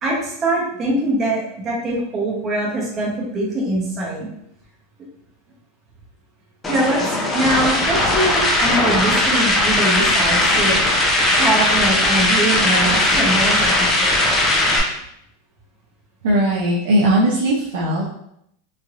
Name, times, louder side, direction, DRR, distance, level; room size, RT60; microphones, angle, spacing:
voice 1, 0.0-4.3 6.7-10.8 11.3-14.2, right 1 dB, 25° right, -4 dB, 0.8 m, -23 dB
sound 1, 6.6-14.8, left 1 dB, 15° left, 0.5 m, -18 dB
voice 2, 16.2-18.1, right 1 dB, 75° right, -5 dB, 0.6 m, -18 dB
3.2 x 2.6 x 2.4 m, 0.74 s
supercardioid pair, 160°, 0 cm